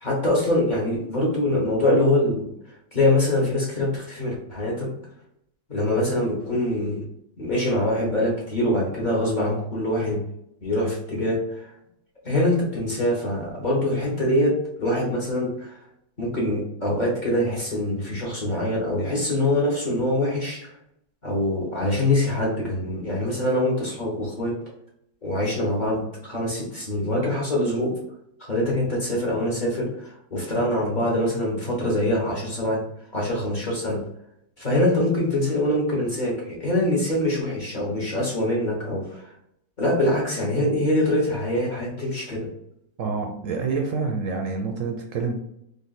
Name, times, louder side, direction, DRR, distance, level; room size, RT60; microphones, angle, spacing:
voice 1, 0.0-2.5 2.9-4.9 5.7-7.0 7.4-10.2 10.6-11.7 12.2-15.7 16.2-20.7 21.2-24.6 25.2-28.0 28.4-32.8 33.1-34.0 34.6-39.2 39.8-42.5, left 1 dB, 35° left, -4 dB, 1.1 m, -24 dB
voice 2, 43.0-45.3, right 4 dB, 65° right, 3 dB, 0.9 m, -27 dB
3.3 x 2.6 x 4.0 m, 0.76 s
omnidirectional pair, 1.6 m